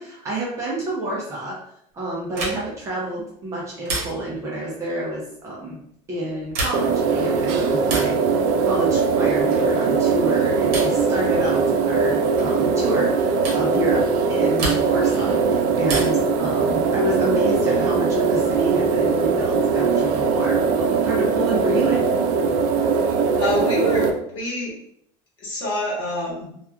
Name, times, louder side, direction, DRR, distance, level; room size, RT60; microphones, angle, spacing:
voice 1, 0.0-1.6 1.9-5.8 6.1-8.2 8.6-14.0 14.3-22.0, right 1 dB, 20° right, -4 dB, 0.5 m, -28 dB
sound 1, 2.3-2.9 3.9-4.5 6.4-7.0 7.8-8.2 9.5-9.8 10.7-11.1 12.4-12.6 13.4-13.7 14.6-15.1 15.9-16.3 17.8-18.5, right 2 dB, 60° right, 0.9 m, -30 dB
sound 2, 6.7-24.1, right 5 dB, 75° right, 0.4 m, -20 dB
voice 2, 23.0-24.7 25.4-26.5, left 1 dB, 35° left, -6 dB, 1.1 m, -26 dB
2.9 x 2.3 x 2.3 m, 0.70 s
cardioid pair, 175°, 13 cm